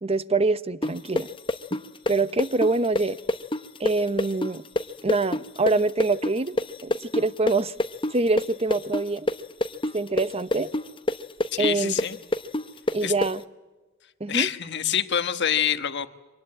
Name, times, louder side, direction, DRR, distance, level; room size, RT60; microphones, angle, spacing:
voice 1, 0.0-1.3 1.7-1.8 2.1-3.2 3.8-4.6 5.0-6.6 6.8-7.7 8.1-9.3 9.9-10.7 11.6-11.9 12.9-13.4 14.2-14.5, right 3 dB, 30° right, 14 dB, 0.8 m, -25 dB
sound 1, 0.8-8.5 8.7-13.3, left 2 dB, 25° left, 0.9 m, -26 dB
voice 2, 11.5-12.2 13.0-13.1 14.3-16.1, left 9 dB, 60° left, 10 dB, 1.3 m, -26 dB
25.0 x 19.5 x 8.7 m, 1.2 s
head